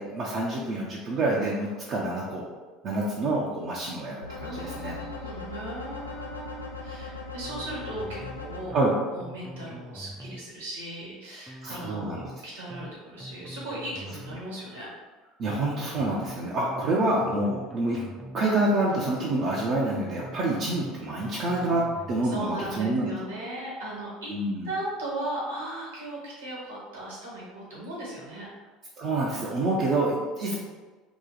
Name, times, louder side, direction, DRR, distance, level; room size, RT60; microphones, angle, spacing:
voice 1, 0.0-2.4 2.8-5.0 8.7-8.9 11.6-12.3 15.4-18.0 18.3-21.8 22.1-23.1 24.3-24.7 29.0-30.6, right 2 dB, 45° right, -5 dB, 0.6 m, -27 dB
sound 1, 4.2-8.6, left 3 dB, 85° left, 0.4 m, -39 dB
voice 2, 4.4-8.8 9.1-14.9 22.2-24.3 24.6-28.5, right 1 dB, 75° right, -5 dB, 1.3 m, -37 dB
sound 2, 7.5-8.4 8.7-8.9 9.2-10.4 11.5-12.4 12.7-12.9 13.2-14.4 15.5-16.4 16.7-16.9 17.2-18.4 19.5-20.4 20.7-20.9 21.2-22.4, right 1 dB, 5° right, 0.5 m, -43 dB
2.9 x 2.4 x 3.9 m, 1.3 s
figure-of-eight pair, 65°, 0 cm